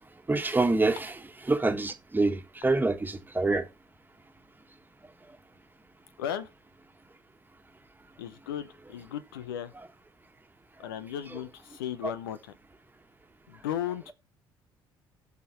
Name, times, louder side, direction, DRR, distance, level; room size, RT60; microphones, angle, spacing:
voice 1, 0.3-1.2 1.5-3.7 12.0-12.1, right 3 dB, 15° right, 1.5 m, -26 dB
voice 2, 6.2-6.5 8.2-9.7 10.8-12.5 13.5-14.1, left 10 dB, 75° left, 0.7 m, -35 dB
16.0 x 6.0 x 3.1 m
figure-of-eight pair, 50°, 12 cm